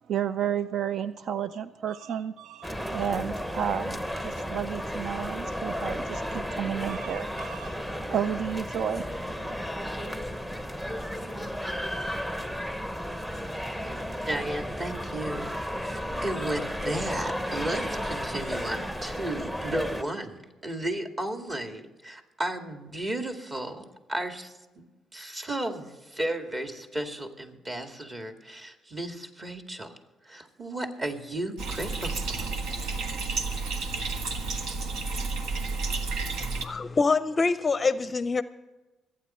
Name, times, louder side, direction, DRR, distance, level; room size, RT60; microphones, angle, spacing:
voice 1, 0.1-7.8 8.1-9.4, right 9 dB, 65° right, 13 dB, 0.4 m, -32 dB
sound 1, 2.6-20.0, equal, 10° right, 0.9 m, -33 dB
voice 2, 14.3-24.8 25.1-29.9 30.2-32.5, right 1 dB, 30° right, 5 dB, 2.1 m, -34 dB
Bathtub (filling or washing), 31.6-36.7, right 3 dB, 85° right, 1.2 m, -31 dB
voice 3, 36.4-38.4, left 4 dB, 30° left, 14 dB, 0.5 m, -25 dB
25.0 x 9.3 x 4.3 m, 1.1 s
cardioid pair, 90°, 0 cm